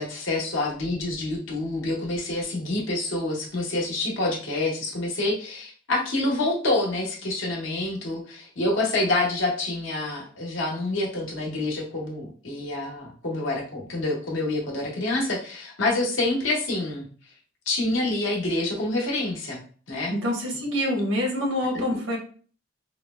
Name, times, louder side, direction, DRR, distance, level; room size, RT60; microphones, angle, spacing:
voice 1, 0.0-17.0 17.7-19.6 19.9-20.1 21.7-21.8, left 2 dB, 85° left, -2 dB, 1.1 m, -27 dB
voice 2, 20.1-22.2, left 1 dB, 90° right, 0 dB, 1.1 m, -26 dB
4.5 x 2.0 x 2.2 m, 0.42 s
head